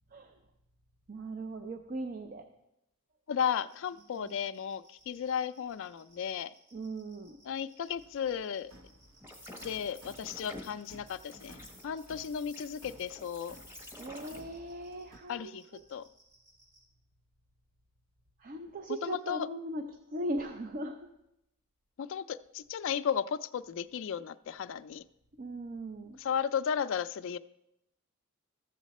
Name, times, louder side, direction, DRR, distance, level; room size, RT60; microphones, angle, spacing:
voice 1, 1.1-2.5 4.2-4.3 6.7-7.4 14.0-15.8 18.4-21.0 25.4-26.2, right 1 dB, 40° right, 6 dB, 0.5 m, -39 dB
voice 2, 3.3-6.5 7.5-8.7 9.6-13.6 15.3-15.6 15.9-16.0 19.0-19.5 22.0-25.0 26.2-27.4, left 7 dB, 60° left, 11 dB, 0.3 m, -34 dB
sound 1, 3.5-16.8, right 1 dB, 90° right, 4.3 m, -64 dB
sound 2, 7.9-15.2, right 1 dB, 60° right, 1.0 m, -57 dB
sound 3, 9.2-14.4, left 1 dB, 10° right, 1.1 m, -50 dB
13.5 x 7.2 x 4.1 m, 0.84 s
head